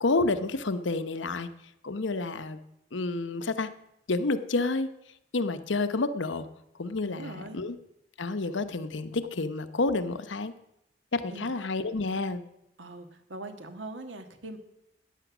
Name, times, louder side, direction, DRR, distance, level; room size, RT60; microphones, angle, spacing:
voice 1, 0.0-1.5 1.8-2.6 2.9-3.7 4.1-4.9 5.3-6.5 6.8-7.8 8.2-10.5 11.1-12.4, left 3 dB, 80° left, 11 dB, 0.9 m, -29 dB
voice 2, 7.0-7.6 11.3-11.5 12.8-14.6, right 2 dB, 85° right, 7 dB, 1.7 m, -41 dB
14.0 x 10.0 x 6.0 m, 0.82 s
head